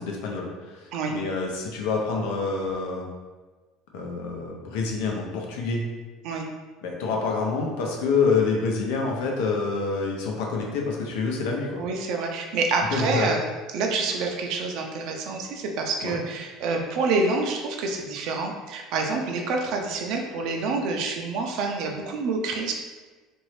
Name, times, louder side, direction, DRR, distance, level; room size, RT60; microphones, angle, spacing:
voice 1, 0.0-3.1 3.9-5.8 6.8-11.8 12.9-13.3 16.0-16.2, left 4 dB, 85° left, 0 dB, 0.7 m, -27 dB
voice 2, 11.8-13.4 13.7-22.7, right 3 dB, 60° right, 2 dB, 0.5 m, -27 dB
3.1 x 2.6 x 3.1 m, 1.3 s
cardioid pair, 135°, 0 cm